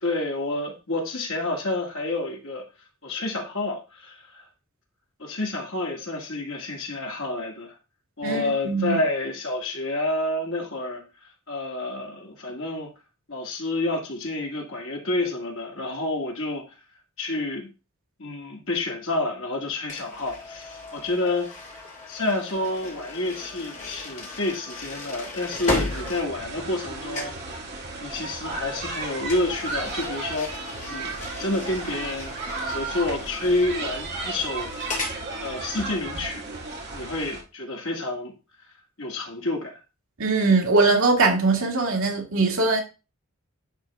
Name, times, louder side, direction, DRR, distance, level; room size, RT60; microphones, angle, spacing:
voice 1, 0.0-2.6 3.0-4.5 5.2-7.8 8.2-11.0 11.5-12.9 13.3-16.7 17.2-17.7 18.2-21.5 22.1-27.7 28.0-30.5 30.9-31.1 31.4-32.3 32.6-34.7 35.4-36.4 36.9-38.3 39.0-39.8, left 2 dB, 60° left, 1.9 m, -29 dB
voice 2, 8.2-9.0 40.2-42.8, right 3 dB, 70° right, 1.9 m, -21 dB
sound 1, 19.9-26.9 27.1-27.5 29.3-35.2, left 2 dB, 35° left, 2.2 m, -35 dB
sound 2, 25.9-37.4, right 3 dB, 50° right, 2.2 m, -34 dB
10.5 x 3.7 x 3.5 m
head